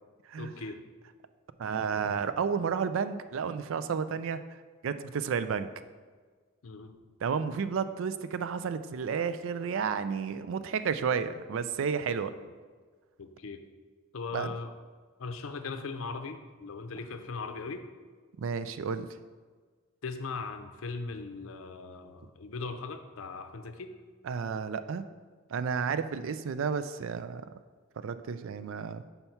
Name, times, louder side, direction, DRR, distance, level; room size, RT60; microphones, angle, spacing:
voice 1, 0.4-0.8 6.6-7.0 12.4-12.5 13.2-13.6 14.1-14.7 15.2-17.8 20.0-23.9, left 4 dB, 75° left, 8 dB, 0.6 m, -39 dB
voice 2, 1.6-4.6 4.8-5.7 7.2-12.3 14.3-14.5 18.4-19.1 24.2-25.0 25.5-27.5 28.0-29.0, right 6 dB, 65° right, 12 dB, 0.4 m, -31 dB
5.6 x 5.6 x 4.5 m, 1.5 s
head